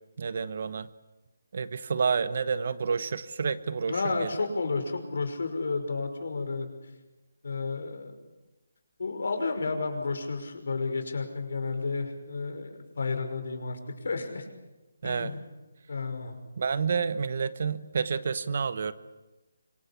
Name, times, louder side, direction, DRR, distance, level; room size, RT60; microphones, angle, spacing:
voice 1, 0.2-0.9 1.5-4.3 15.0-15.3 16.6-18.9, right 5 dB, 45° right, 15 dB, 1.1 m, -29 dB
voice 2, 3.9-6.7 7.4-8.1 9.0-14.5 15.0-15.4 15.9-16.4, left 4 dB, 65° left, 6 dB, 5.7 m, -31 dB
26.0 x 24.0 x 8.5 m, 1.1 s
hypercardioid pair, 170°, 0 cm